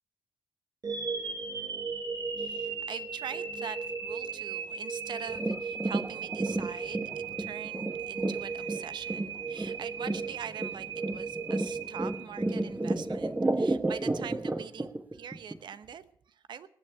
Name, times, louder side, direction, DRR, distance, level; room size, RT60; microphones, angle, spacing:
sound 1, 0.8-12.9, right 5 dB, 55° right, 2.2 m, -37 dB
voice 1, 2.4-16.7, right 8 dB, 75° right, 13 dB, 0.9 m, -43 dB
sound 2, 5.3-15.6 15.9-16.0, right 2 dB, 20° right, 1.1 m, -32 dB
19.5 x 7.3 x 8.3 m, 0.62 s
supercardioid pair, 50°, 8 cm